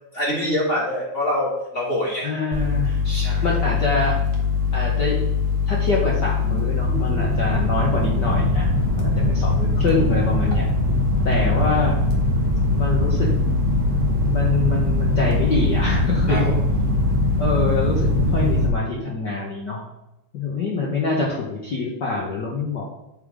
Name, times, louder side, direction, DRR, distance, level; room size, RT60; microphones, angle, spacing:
voice 1, 0.1-2.3 3.0-3.4 11.4-11.6 16.3-16.4, left 1 dB, 35° left, -5 dB, 1.4 m, -25 dB
voice 2, 2.2-3.0 3.4-4.1 4.7-5.2 5.7-10.6 11.2-12.0 12.7-13.3 14.3-16.5 17.4-19.8 20.3-22.8, left 3 dB, 70° left, -3 dB, 1.0 m, -25 dB
sound 1, 2.5-18.7, left 2 dB, 55° right, 1.5 m, -21 dB
8.4 x 3.9 x 4.9 m, 0.92 s
omnidirectional pair, 3.4 m